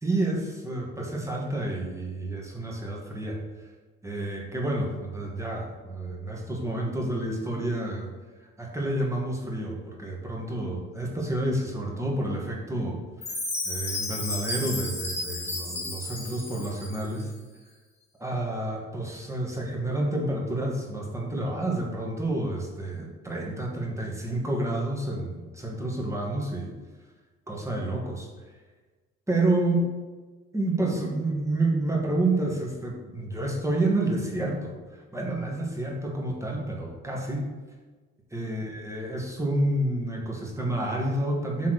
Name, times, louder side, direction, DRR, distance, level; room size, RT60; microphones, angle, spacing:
voice 1, 0.0-3.4 4.0-8.1 8.6-13.0 13.6-17.3 18.2-26.7 27.5-28.3 29.3-29.9 30.5-37.4 38.3-41.7, right 1 dB, 10° right, -2 dB, 1.9 m, -29 dB
Chime, 13.2-17.2, left 2 dB, 20° left, 1.8 m, -33 dB
5.9 x 3.6 x 6.0 m, 1.3 s
supercardioid pair, 70°, 30 cm